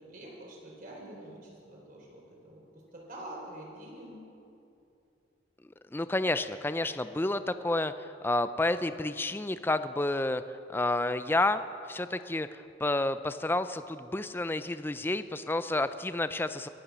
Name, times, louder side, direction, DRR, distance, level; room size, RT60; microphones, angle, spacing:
voice 1, 0.0-4.2, right 1 dB, 45° right, -2 dB, 4.3 m, -46 dB
voice 2, 5.9-10.4 10.7-11.6 11.9-16.7, left 2 dB, 10° left, 12 dB, 0.4 m, -30 dB
23.0 x 9.6 x 6.2 m, 2.6 s
head